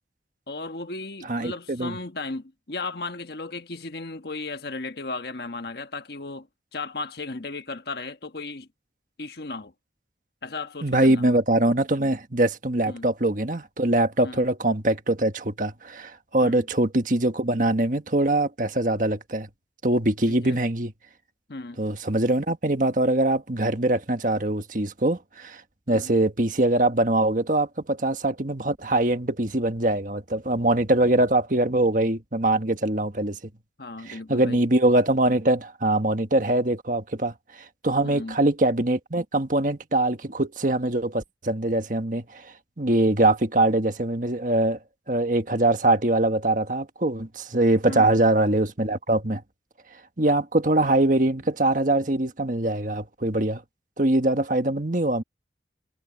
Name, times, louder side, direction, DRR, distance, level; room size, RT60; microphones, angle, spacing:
voice 1, 0.5-6.5 6.7-8.7 9.2-9.7 10.4-11.2 12.8-13.1 14.2-14.4 16.4-16.7 20.3-20.6 21.5-21.8 25.9-26.2 33.8-34.6 38.0-38.4 47.8-48.2, left 3 dB, 65° left, 1.4 m, -35 dB
voice 2, 1.3-2.0 10.8-19.5 19.8-20.9 21.8-25.6 25.9-33.4 34.1-44.8 45.1-49.4 50.2-53.6 54.0-55.2, right 2 dB, 45° right, 1.6 m, -23 dB
head